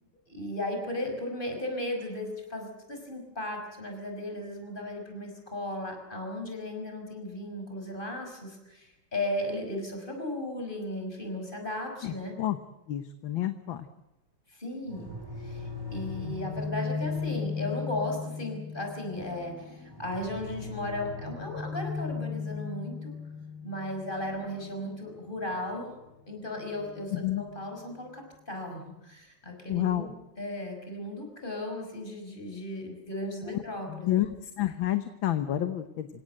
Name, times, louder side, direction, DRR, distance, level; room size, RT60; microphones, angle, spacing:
voice 1, 0.3-12.4 14.5-23.1 23.6-26.0 26.3-30.1 30.4-34.1, left 1 dB, 20° left, 3 dB, 5.8 m, -36 dB
voice 2, 12.0-12.6 12.9-13.9 27.1-27.4 29.7-30.1 33.5-33.6 33.9-36.1, left 13 dB, 70° left, 9 dB, 1.8 m, -29 dB
sound 1, 14.9-27.7, left 5 dB, 10° right, 5.5 m, -38 dB
28.0 x 17.0 x 7.9 m, 0.92 s
omnidirectional pair, 2.3 m